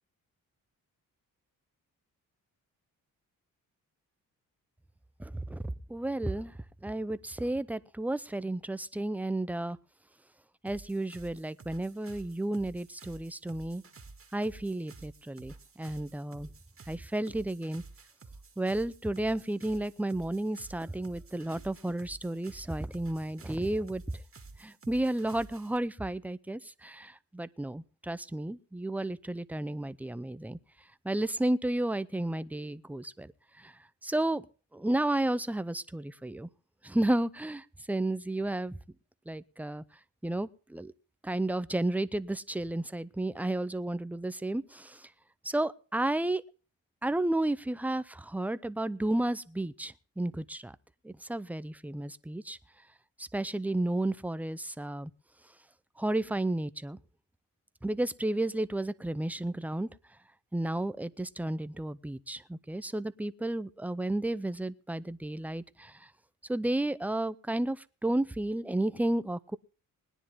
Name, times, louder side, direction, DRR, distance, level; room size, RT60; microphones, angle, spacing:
voice 1, 5.2-5.6 5.9-6.5 6.8-9.8 10.6-13.8 14.3-16.5 16.9-17.8 18.6-24.0 24.6-30.6 31.0-33.3 33.6-33.7 34.0-34.5 34.7-36.5 36.8-38.8 39.3-39.8 40.2-40.9 41.2-45.1 45.4-46.4 47.0-50.8 51.0-52.6 53.2-55.1 56.0-57.0 57.8-59.9 60.5-66.0 66.5-69.6, right 1 dB, 5° right, 0.6 m, -32 dB
sound 1, 10.7-25.8, right 3 dB, 40° right, 2.1 m, -52 dB
20.0 x 10.0 x 3.5 m
cardioid pair, 85°, 35 cm